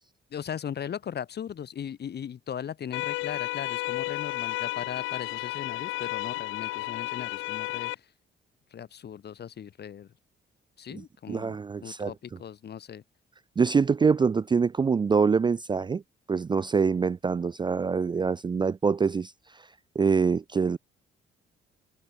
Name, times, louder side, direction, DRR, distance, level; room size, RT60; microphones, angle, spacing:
voice 1, 0.3-8.1 8.7-10.1 10.8-11.6 11.8-13.0, left 8 dB, 55° left, 3.1 m, -38 dB
sound 1, 2.9-7.9, left 19 dB, 90° left, 0.4 m, -32 dB
voice 2, 11.3-12.1 13.6-16.0 16.3-19.6 20.0-20.8, right 5 dB, 25° right, 0.4 m, -25 dB
cardioid pair, 90°, 20 cm